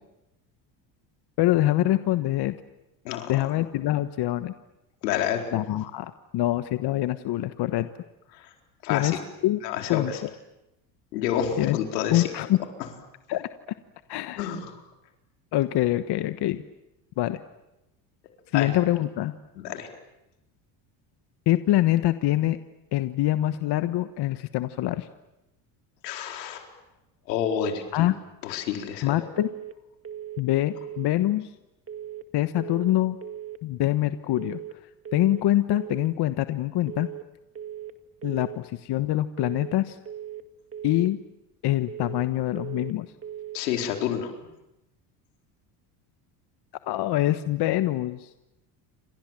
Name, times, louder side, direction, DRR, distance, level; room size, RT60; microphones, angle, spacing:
voice 1, 1.4-2.5 3.3-4.5 5.5-7.9 8.9-9.1 9.4-9.6 9.9-10.3 11.6-11.8 12.1-12.6 13.3-13.5 14.1-14.5 15.5-16.6 17.2-17.4 18.5-19.3 21.5-22.6 22.9-25.1 27.9-28.1 29.0-29.5 30.4-31.5 32.3-33.2 33.6-34.6 35.1-37.1 38.2-40.0 40.8-41.2 41.6-43.1 46.9-48.3, left 15 dB, 55° left, 11 dB, 1.3 m, -24 dB
voice 2, 3.0-3.4 5.0-5.4 8.3-8.5 8.8-9.2 9.6-10.2 11.1-12.3 14.4-14.6 18.5-18.7 19.6-19.9 26.0-26.6 27.3-28.1 28.4-29.2 43.5-44.3, left 9 dB, 90° left, 3 dB, 4.3 m, -29 dB
sound 1, 29.4-29.8 30.0-30.4 30.7-31.1 31.9-32.3 32.5-32.9 33.2-33.6 34.4-34.8 35.0-35.4 35.7-36.1 36.9-37.3 37.5-37.9 38.2-38.6 39.4-39.8 40.1-40.4 40.7-41.1 41.9-42.3 42.6-43.0 43.2-43.6, right 10 dB, 30° right, 2.1 m, -38 dB
29.5 x 26.5 x 7.5 m, 0.93 s
supercardioid pair, 85°, 47 cm